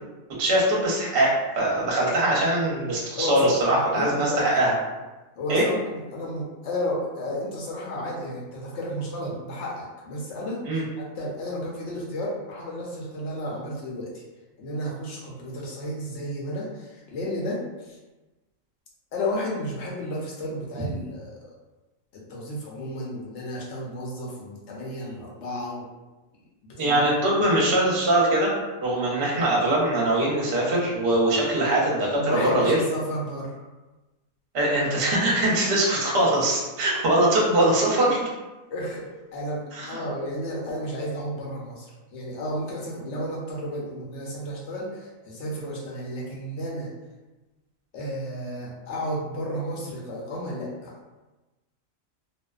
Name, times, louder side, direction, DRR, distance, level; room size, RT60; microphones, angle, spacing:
voice 1, 0.4-4.7 5.5-5.6 10.7-10.8 26.8-28.5 28.8-32.8 34.5-38.3 39.7-40.0, right 1 dB, 50° right, -4 dB, 0.8 m, -22 dB
voice 2, 3.2-4.5 5.4-14.2 14.6-18.0 19.1-21.5 22.1-25.9 26.6-27.0 27.4-27.5 32.2-33.7 38.7-46.9 47.9-50.9, equal, 65° left, -4 dB, 0.8 m, -32 dB
2.5 x 2.1 x 2.3 m, 1.1 s
omnidirectional pair, 1.4 m